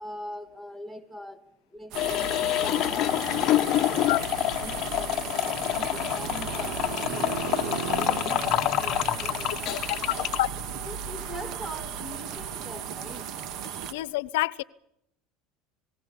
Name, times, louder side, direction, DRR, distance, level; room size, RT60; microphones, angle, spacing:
voice 1, 0.0-3.4 3.7-4.1 4.6-10.2 10.8-13.4, equal, 10° right, 10 dB, 2.8 m, -43 dB
sound 1, 1.9-10.4, left 14 dB, 50° left, 1.0 m, -27 dB
sound 2, 1.9-13.9, right 8 dB, 55° right, 2.8 m, -36 dB
sound 3, 3.3-12.7, right 7 dB, 70° right, 3.2 m, -40 dB
voice 2, 9.7-10.0 10.4-10.5 13.9-14.6, left 19 dB, 85° left, 19 dB, 0.9 m, -27 dB
28.5 x 19.0 x 7.2 m, 0.77 s
supercardioid pair, 125°, 0 cm